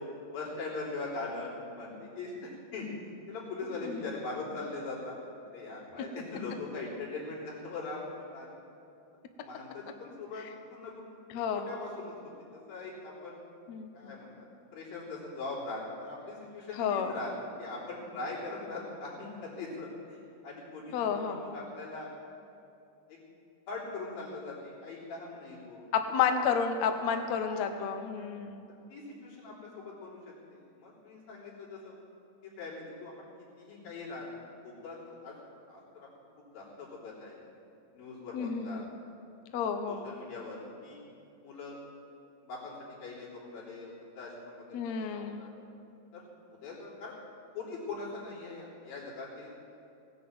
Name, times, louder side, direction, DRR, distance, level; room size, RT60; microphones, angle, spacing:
voice 1, 0.0-2.9 3.3-5.2 5.5-8.6 9.4-11.2 11.5-12.1 12.4-13.4 13.9-14.5 14.7-17.3 17.6-22.1 23.1-23.2 23.7-25.9 27.1-27.8 28.9-30.2 30.5-31.9 32.4-33.3 33.6-34.4 34.6-35.3 35.7-36.1 36.5-37.4 37.9-38.9 39.9-41.0 41.4-41.8 42.4-45.6 46.1-46.2 46.5-47.2 47.5-49.6, left 3 dB, 85° left, -6 dB, 5.5 m, -41 dB
voice 2, 11.3-11.7 13.7-14.2 16.8-17.2 20.9-21.4 25.9-28.7 38.3-38.9 39.5-40.0 44.7-45.4, left 7 dB, 70° left, 6 dB, 1.8 m, -31 dB
18.0 x 9.8 x 7.8 m, 2.7 s
omnidirectional pair, 4.1 m